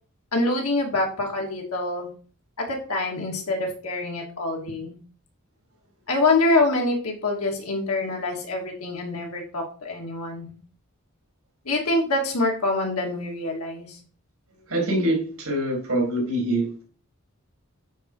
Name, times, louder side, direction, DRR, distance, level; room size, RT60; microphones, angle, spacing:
voice 1, 0.3-2.1 2.6-5.0 6.1-10.5 11.6-14.0, left 2 dB, 85° left, 1 dB, 2.6 m, -25 dB
voice 2, 14.7-16.8, right 1 dB, 75° right, 0 dB, 4.0 m, -24 dB
9.1 x 4.6 x 4.8 m, 0.41 s
head